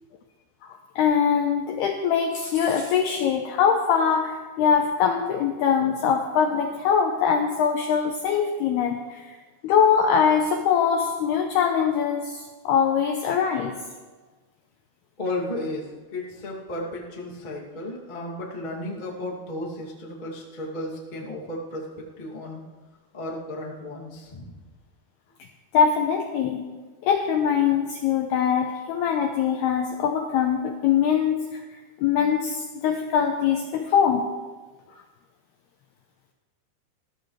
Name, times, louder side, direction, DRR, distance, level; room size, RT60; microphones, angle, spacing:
voice 1, 1.0-9.4 9.6-13.8 25.7-26.7 27.0-31.6 32.0-34.3, left 7 dB, 85° left, 3 dB, 2.3 m, -22 dB
voice 2, 15.2-21.9 22.2-22.6 23.1-24.5, left 1 dB, 30° left, -4 dB, 0.8 m, -34 dB
20.5 x 14.5 x 3.3 m, 1.3 s
omnidirectional pair, 5.7 m